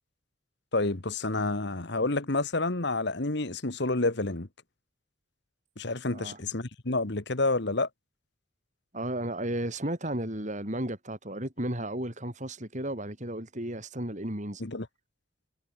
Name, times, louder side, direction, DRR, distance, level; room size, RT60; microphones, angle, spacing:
voice 1, 0.7-4.5 5.8-7.9 14.6-14.9, left 2 dB, 60° left, 1.7 m, -29 dB
voice 2, 8.9-14.7, right 1 dB, 40° right, 5.1 m, -34 dB
head